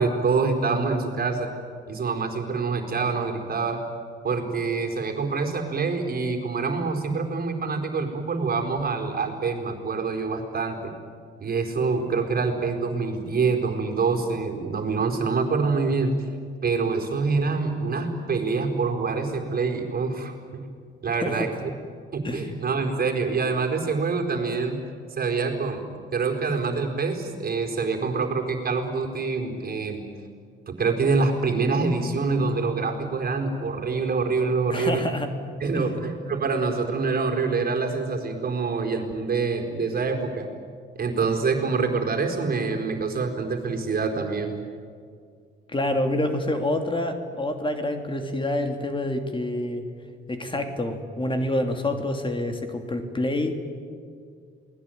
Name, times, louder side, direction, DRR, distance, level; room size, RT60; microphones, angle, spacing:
voice 1, 0.0-1.5 1.9-3.8 4.2-10.9 11.4-16.1 16.6-20.6 21.0-21.7 22.1-24.8 25.2-25.8 26.1-30.0 30.7-35.0 35.6-40.5 41.0-44.5, right 4 dB, 50° right, 3 dB, 4.4 m, -26 dB
voice 2, 34.7-35.3 35.7-35.9 45.7-49.8 50.3-53.6, left 1 dB, 25° left, 6 dB, 2.8 m, -27 dB
28.0 x 20.0 x 9.3 m, 2.1 s
cardioid pair, 90°, 20 cm